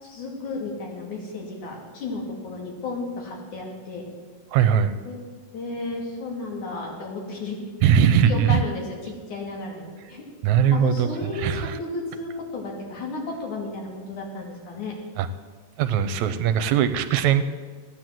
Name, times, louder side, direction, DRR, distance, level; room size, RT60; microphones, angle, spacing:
voice 1, 0.0-4.0 5.1-5.2 5.5-7.6 8.2-15.0, left 3 dB, 75° left, -1 dB, 4.3 m, -33 dB
voice 2, 4.5-4.9 7.8-8.6 10.4-11.8 15.2-15.3 15.8-17.4, right 8 dB, 75° right, 11 dB, 2.0 m, -20 dB
15.5 x 9.7 x 7.7 m, 1.5 s
omnidirectional pair, 3.5 m